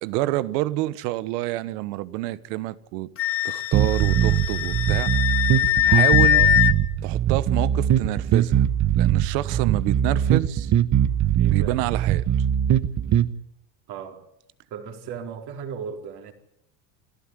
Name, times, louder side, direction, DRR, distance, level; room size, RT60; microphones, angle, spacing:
voice 1, 0.0-3.1 3.4-5.1 5.9-6.4 7.0-8.7 9.0-10.7 11.4-12.2, right 17 dB, 75° right, 1.4 m, -28 dB
Wind instrument woodwind instrument, 3.2-6.7, left 14 dB, 30° left, 1.3 m, -21 dB
sound 1, 3.7-13.3, right 10 dB, 35° right, 1.2 m, -21 dB
voice 2, 11.4-11.8 13.9-14.2 14.7-16.3, right 7 dB, 50° right, 4.4 m, -36 dB
29.0 x 13.0 x 9.8 m
supercardioid pair, 110°, 48 cm